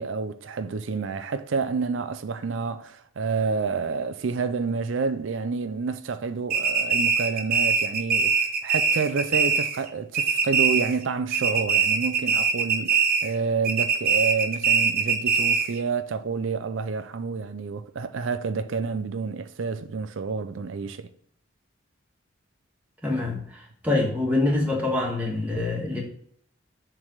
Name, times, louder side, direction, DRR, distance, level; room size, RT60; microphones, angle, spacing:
voice 1, 0.0-21.1, right 5 dB, 70° right, 0.5 m, -29 dB
sound 1, 6.5-9.9 10.1-11.0 11.3-13.4 13.6-15.8, right 5 dB, 45° right, 0.9 m, -22 dB
voice 2, 23.0-26.0, left 2 dB, 10° right, 1.5 m, -25 dB
7.3 x 3.4 x 6.2 m
head